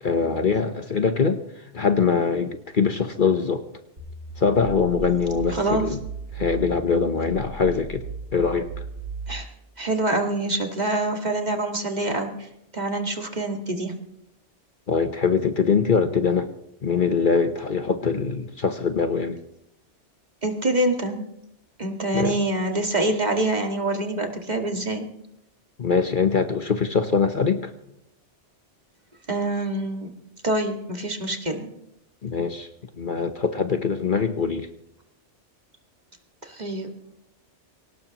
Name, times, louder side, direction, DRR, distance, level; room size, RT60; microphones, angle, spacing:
voice 1, 0.0-1.4 1.7-3.6 4.4-6.0 6.3-8.0 8.3-8.8 14.9-16.5 16.8-19.4 22.1-22.4 25.8-27.7 32.2-32.7 33.0-34.7, left 5 dB, 45° left, 7 dB, 1.1 m, -23 dB
sound 1, 4.0-9.4, right 3 dB, 80° right, 7.1 m, -36 dB
voice 2, 5.5-5.9 9.3-9.5 9.8-12.5 12.7-13.9 20.4-21.3 21.8-25.1 29.3-30.1 30.4-31.7 36.4-36.9, right 2 dB, 35° right, 3 dB, 2.0 m, -25 dB
24.0 x 18.5 x 3.0 m, 0.82 s
omnidirectional pair, 1.2 m